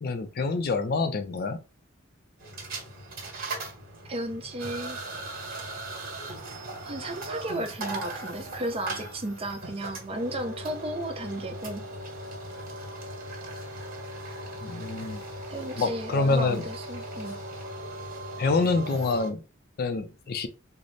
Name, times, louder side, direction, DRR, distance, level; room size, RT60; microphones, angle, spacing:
voice 1, 0.0-1.6 14.6-15.2 15.8-16.6 18.4-19.4 19.8-20.5, left 3 dB, 50° left, 0.4 m, -26 dB
sound 1, 2.4-19.3, right 1 dB, 50° right, 1.3 m, -38 dB
voice 2, 4.1-5.0 6.8-11.8 15.5-17.4, right 1 dB, 30° right, 0.6 m, -34 dB
4.0 x 2.0 x 3.2 m
head